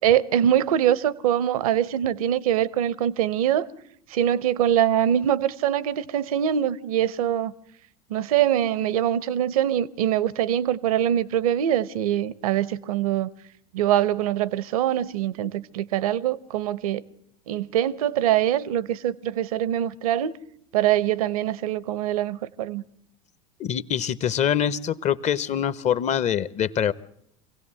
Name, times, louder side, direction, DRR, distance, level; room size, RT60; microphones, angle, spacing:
voice 1, 0.0-3.7 4.1-7.5 8.1-13.3 13.7-17.0 17.5-20.4 20.7-22.8, right 11 dB, 75° right, 0.8 m, -23 dB
voice 2, 23.6-26.9, left 9 dB, 40° left, 0.9 m, -24 dB
25.5 x 16.5 x 7.5 m
hypercardioid pair, 80°, 18 cm